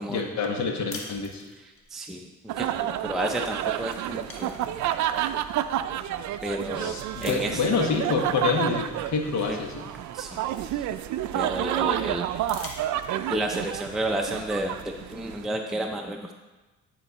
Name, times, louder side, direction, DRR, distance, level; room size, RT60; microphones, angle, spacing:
voice 1, 0.1-1.4 6.7-9.9, left 5 dB, 65° left, 3 dB, 1.3 m, -27 dB
sound 1, 0.9-1.9 3.3-3.5 3.8-5.4 6.1-6.2 7.2-7.8 9.2-9.3 9.7-11.3 12.3-13.4, left 3 dB, 45° left, 1.2 m, -44 dB
voice 2, 1.9-2.3 2.6-4.5 6.4-7.6 9.5-9.6 10.1-10.3 10.7-10.9 11.3-12.3 13.3-16.3, right 1 dB, ahead, 2 dB, 0.5 m, -31 dB
sound 2, 2.5-15.4, right 11 dB, 70° right, 0.4 m, -30 dB
9.9 x 4.4 x 4.1 m, 1.2 s
cardioid pair, 90°, 30 cm